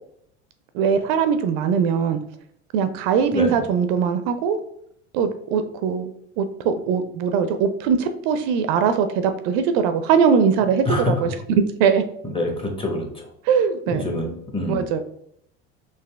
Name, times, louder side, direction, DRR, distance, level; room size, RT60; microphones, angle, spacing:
voice 1, 0.7-2.2 2.7-4.6 5.1-12.0 13.5-14.0 14.7-15.0, right 6 dB, 60° right, 9 dB, 0.4 m, -21 dB
voice 2, 12.2-13.3 13.9-14.9, left 1 dB, 15° left, 2 dB, 0.9 m, -26 dB
4.0 x 2.5 x 2.3 m, 0.71 s
hypercardioid pair, 85°, 33 cm